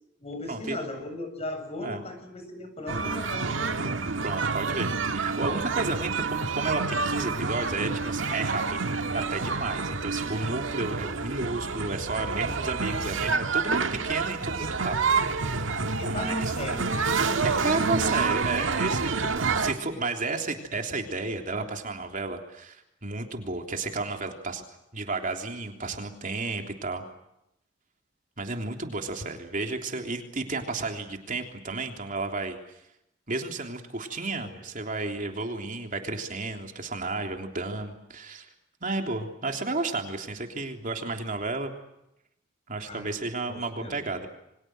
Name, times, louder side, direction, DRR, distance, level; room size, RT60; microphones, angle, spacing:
voice 1, 0.2-3.9 16.0-18.0 34.4-34.6 42.8-43.2 43.5-44.0, left 1 dB, 35° left, 7 dB, 7.6 m, -37 dB
sound 1, 2.9-19.7, right 4 dB, 85° right, 1.7 m, -28 dB
voice 2, 4.2-8.8 9.1-16.5 17.6-24.6 24.9-27.0 28.4-32.6 33.3-38.5 38.8-41.7 42.7-44.3, right 3 dB, 45° right, 4 dB, 3.3 m, -32 dB
28.5 x 24.5 x 7.9 m, 0.83 s
head